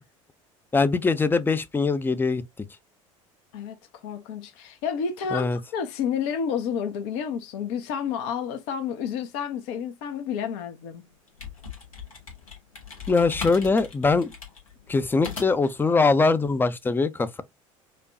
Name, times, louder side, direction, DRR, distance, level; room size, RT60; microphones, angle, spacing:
voice 1, 0.7-2.4 5.3-5.6 13.1-14.3 14.9-17.4, left 4 dB, 10° left, 0.5 m, -22 dB
voice 2, 4.0-11.0, left 7 dB, 60° left, 0.8 m, -30 dB
sound 1, 11.1-15.8, left 6 dB, 80° left, 1.2 m, -39 dB
4.9 x 2.2 x 2.5 m
figure-of-eight pair, 70°, 17 cm